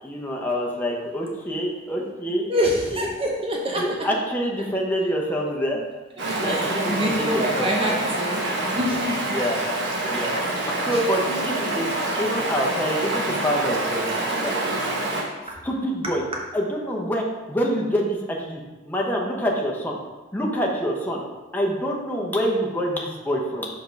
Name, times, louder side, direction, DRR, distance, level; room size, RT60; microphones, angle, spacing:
voice 1, 0.0-3.1 3.8-5.8 6.4-8.0 9.3-9.6 10.1-11.9 12.2-14.6 15.6-16.2 16.5-20.0 20.3-21.2 21.5-23.7, equal, 10° left, -2 dB, 0.9 m, -26 dB
voice 2, 2.5-3.8 6.2-9.4 10.9-11.0, equal, 30° right, -1 dB, 0.8 m, -26 dB
Stream, 6.2-15.2, right 2 dB, 65° right, 1.2 m, -26 dB
5.2 x 3.8 x 5.2 m, 1.2 s
head